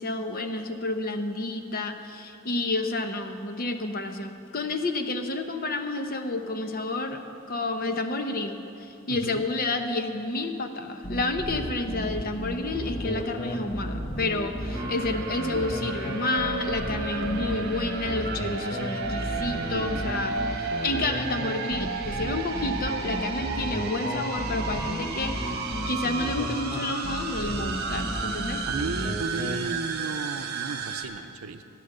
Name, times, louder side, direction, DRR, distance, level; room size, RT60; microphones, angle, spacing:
voice 1, 0.0-7.2 7.5-8.6 9.1-28.6, left 2 dB, 45° left, 6 dB, 0.9 m, -30 dB
voice 2, 9.1-9.4 19.6-20.1 28.7-31.6, right 3 dB, 80° right, 10 dB, 0.6 m, -34 dB
sound 1, 11.0-29.5, equal, 30° left, 1.2 m, -33 dB
sound 2, 14.7-31.1, right 4 dB, 50° right, 1.3 m, -33 dB
14.0 x 9.4 x 6.7 m, 2.7 s
head